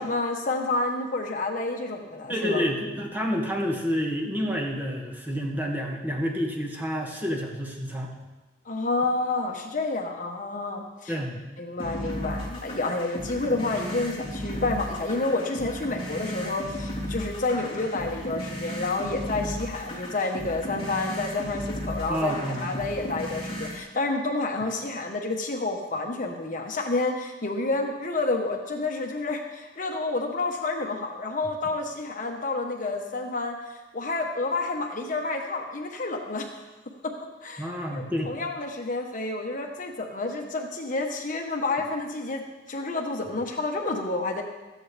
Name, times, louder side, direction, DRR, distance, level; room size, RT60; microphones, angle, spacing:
voice 1, 0.0-2.6 8.6-11.2 11.6-36.5 37.4-42.4 42.7-44.4, left 2 dB, 45° left, 2 dB, 1.3 m, -29 dB
voice 2, 2.3-8.1 11.1-11.4 22.1-22.8 37.6-38.3, equal, 10° right, -1 dB, 2.0 m, -29 dB
sound 1, 11.8-23.8, equal, 30° left, 3.2 m, -35 dB
16.5 x 13.5 x 3.5 m, 1.1 s
head